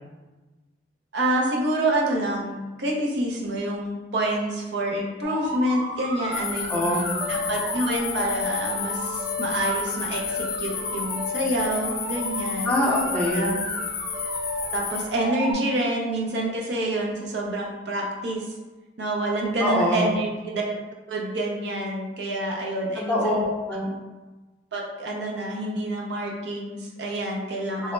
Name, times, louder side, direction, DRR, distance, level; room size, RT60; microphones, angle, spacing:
voice 1, 1.1-6.8 7.3-12.7 13.3-13.5 14.7-18.5 19.0-20.7 21.1-23.4 23.8-23.9 24.7-27.9, right 1 dB, 70° right, -2 dB, 0.6 m, -27 dB
sound 1, 5.2-15.5, left 1 dB, 30° right, 0.9 m, -33 dB
sound 2, 6.3-15.1, left 7 dB, 55° left, 0.4 m, -32 dB
voice 2, 6.7-7.1 12.6-13.6 19.6-20.1 23.1-23.9 27.8-27.9, left 1 dB, 5° left, -5 dB, 0.6 m, -24 dB
3.4 x 2.0 x 3.1 m, 1.2 s
head